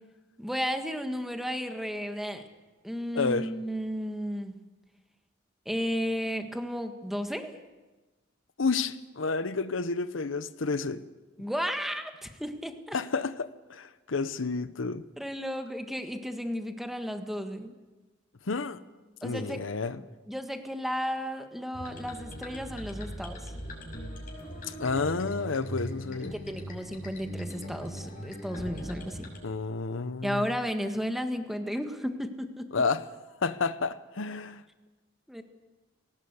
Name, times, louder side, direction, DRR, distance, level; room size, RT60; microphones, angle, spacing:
voice 1, 0.4-2.4 2.8-4.6 5.6-7.5 11.4-13.0 15.2-17.7 19.2-19.6 19.9-23.5 26.3-29.2 30.2-32.7 35.3-35.4, equal, ahead, 1.6 m, -33 dB
voice 2, 3.1-3.5 8.6-11.0 12.9-15.0 18.5-18.8 19.2-20.0 24.8-26.3 29.4-30.5 32.7-33.0 33.4-34.6, left 4 dB, 85° left, 0.8 m, -30 dB
sound 1, 21.7-29.4, equal, 45° left, 5.8 m, -40 dB
19.5 x 18.5 x 8.1 m
head